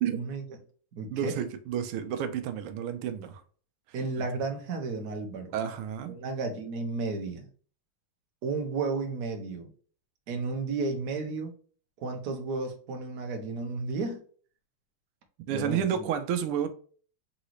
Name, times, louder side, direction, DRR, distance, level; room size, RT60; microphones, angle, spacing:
voice 1, 0.1-0.4 1.0-1.4 3.9-5.5 6.1-7.5 8.4-9.7 10.3-11.5 12.0-14.2 15.5-16.0, right 3 dB, 55° right, 1.2 m, -33 dB
voice 2, 1.1-3.4 5.5-6.2 15.5-16.7, right 8 dB, 90° right, 1.5 m, -30 dB
3.9 x 3.8 x 3.0 m
omnidirectional pair, 2.4 m